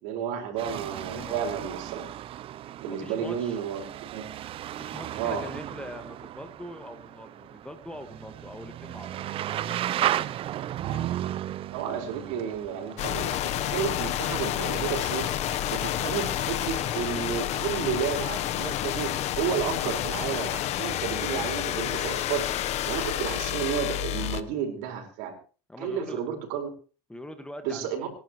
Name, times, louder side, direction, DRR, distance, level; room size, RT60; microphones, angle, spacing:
voice 1, 0.0-2.0 2.8-4.2 5.2-5.4 11.7-13.4 13.7-15.3 15.7-19.1 19.4-22.4 22.8-25.3 25.8-26.7 27.6-28.1, right 7 dB, 65° right, 3 dB, 4.9 m, -31 dB
sound 1, 0.6-18.3, right 12 dB, 40° right, 0.6 m, -36 dB
voice 2, 1.1-1.4 2.9-3.6 4.8-9.2 9.6-10.7 25.7-26.2 27.1-28.1, left 1 dB, 5° left, 7 dB, 1.7 m, -43 dB
sound 2, 13.0-24.4, left 12 dB, 50° left, 1.0 m, -29 dB
27.0 x 11.5 x 3.1 m, 0.38 s
supercardioid pair, 115°, 15 cm